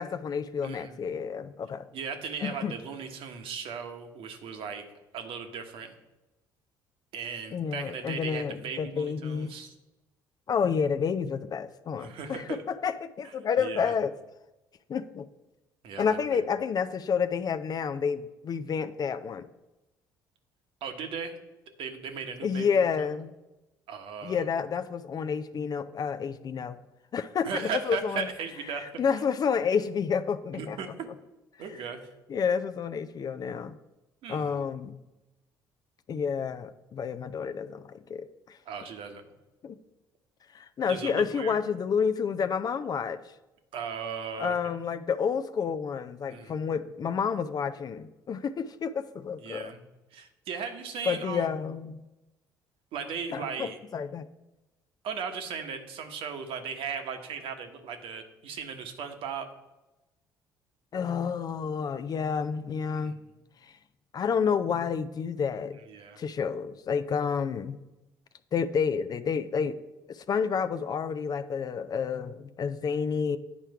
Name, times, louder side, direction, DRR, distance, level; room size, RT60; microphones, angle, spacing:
voice 1, 0.0-1.8 2.4-2.7 7.5-9.5 10.5-12.4 12.8-14.1 14.9-15.3 16.0-19.5 22.4-23.3 24.2-26.8 27.1-27.5 27.8-28.3 28.8-30.8 32.3-33.7 34.3-35.0 36.1-38.6 39.6-39.8 40.5-43.2 44.4-49.7 51.1-52.0 53.3-54.3 60.9-63.2 64.1-65.8 66.2-67.8 68.5-69.8 70.1-73.4, left 6 dB, 35° left, 11 dB, 0.5 m, -29 dB
voice 2, 0.6-1.0 1.9-4.9 5.1-5.9 7.1-9.7 12.0-12.6 13.2-13.9 15.8-16.4 20.8-21.4 21.8-22.8 23.9-24.5 27.4-28.8 30.5-31.1 31.6-32.1 34.2-34.6 38.6-39.2 40.8-41.6 43.7-44.6 46.3-46.6 49.4-49.8 50.1-51.5 52.9-53.8 55.0-59.5 62.9-63.3 65.9-66.2, right 6 dB, 55° right, 6 dB, 1.1 m, -37 dB
9.8 x 4.4 x 4.7 m, 1.0 s
figure-of-eight pair, 55°, 11 cm